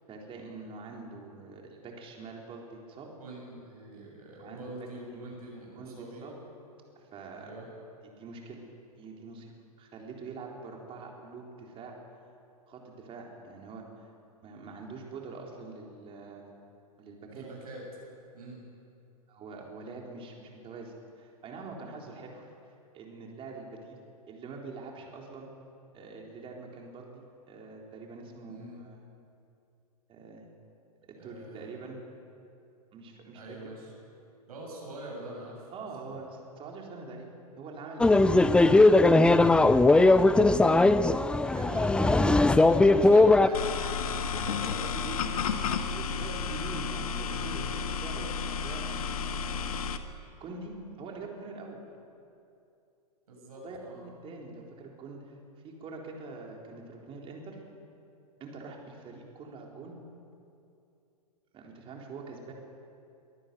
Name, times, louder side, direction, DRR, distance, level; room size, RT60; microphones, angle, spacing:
voice 1, 0.1-3.1 4.4-4.7 5.1-5.3 5.7-6.3 7.1-7.5 8.0-8.6 9.0-12.0 12.7-14.1 14.4-16.4 17.0-17.5 19.3-22.5 22.9-24.0 24.3-25.5 25.9-29.0 30.1-30.4 31.1-32.0 32.9-33.6 35.7-37.3 37.6-39.9 42.3-42.4 43.8-49.7 50.4-51.8 53.5-55.2 55.6-57.6 58.4-60.0 61.5-62.5, right 3 dB, 30° right, 0 dB, 4.0 m, -44 dB
voice 2, 3.2-6.4 7.4-7.7 17.3-17.8 18.3-18.6 28.5-28.8 31.2-31.8 33.3-33.9 34.5-35.7 38.1-38.4 41.3-43.7 53.3-54.0, right 2 dB, 75° right, -2 dB, 7.2 m, -43 dB
sound 1, 38.0-43.5, left 2 dB, 5° left, 0.5 m, -19 dB
sound 2, 43.5-50.0, left 6 dB, 65° left, 1.5 m, -32 dB
23.5 x 12.5 x 9.2 m, 2.6 s
hypercardioid pair, 110°, 19 cm